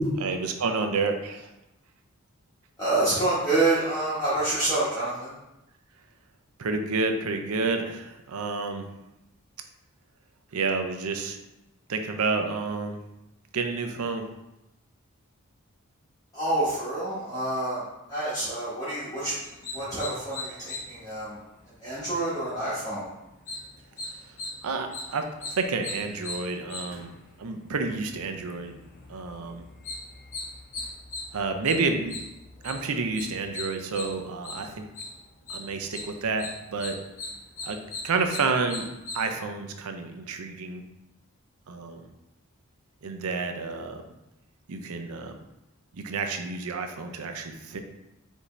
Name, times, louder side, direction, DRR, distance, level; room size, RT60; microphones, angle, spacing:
voice 1, 0.2-1.5 6.6-8.9 10.5-11.4 11.9-13.0 13.5-14.3 24.6-27.1 27.4-28.8 29.1-29.6 31.3-32.2 32.6-34.8 35.5-37.0 37.6-37.8 38.0-38.9 39.1-40.8 41.7-42.0 43.0-44.0 44.7-45.4 45.9-47.8, right 4 dB, 80° right, 6 dB, 0.5 m, -29 dB
voice 2, 2.8-5.3 16.3-17.8 18.1-19.4 19.7-21.4 21.8-23.1, right 2 dB, 15° left, -12 dB, 1.0 m, -27 dB
sound 1, 19.4-39.2, left 2 dB, 35° left, 0.7 m, -40 dB
5.0 x 2.7 x 3.2 m, 0.93 s
head